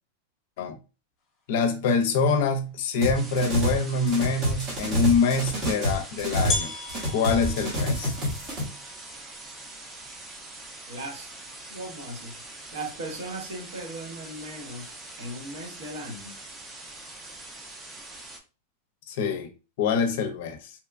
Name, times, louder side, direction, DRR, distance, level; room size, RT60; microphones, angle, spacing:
voice 1, 1.5-6.7 7.1-8.2 19.1-19.5 19.8-20.7, left 4 dB, 55° left, 0.5 m, -25 dB
sound 1, 3.0-6.6 6.9-8.6, equal, 30° right, 0.9 m, -27 dB
sound 2, 3.1-18.4, right 2 dB, 10° right, 0.4 m, -43 dB
sound 3, 6.5-12.1, left 3 dB, 25° left, 0.8 m, -37 dB
voice 2, 10.9-16.3, right 1 dB, 70° right, 0.8 m, -38 dB
2.8 x 2.2 x 2.4 m
supercardioid pair, 165°, 0 cm